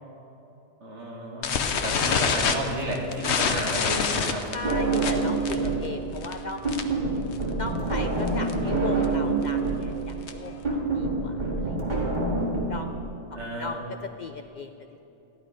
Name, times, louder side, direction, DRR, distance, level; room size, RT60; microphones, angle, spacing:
voice 1, 0.8-4.5 5.4-5.7 8.6-8.7 13.3-13.8, right 1 dB, 75° right, -1 dB, 2.2 m, -32 dB
sound 1, 1.4-7.1 7.3-7.6 7.9-8.0 8.3-8.5 9.0-10.6, left 6 dB, 75° left, 1.1 m, -27 dB
voice 2, 4.5-6.7 7.6-11.8 12.7-13.0 13.3-15.0, left 3 dB, 55° left, 6 dB, 0.5 m, -38 dB
sound 2, 4.6-5.9 6.2-12.6, right 3 dB, 40° right, 1.9 m, -26 dB
14.0 x 11.5 x 5.0 m, 3.0 s
omnidirectional pair, 1.2 m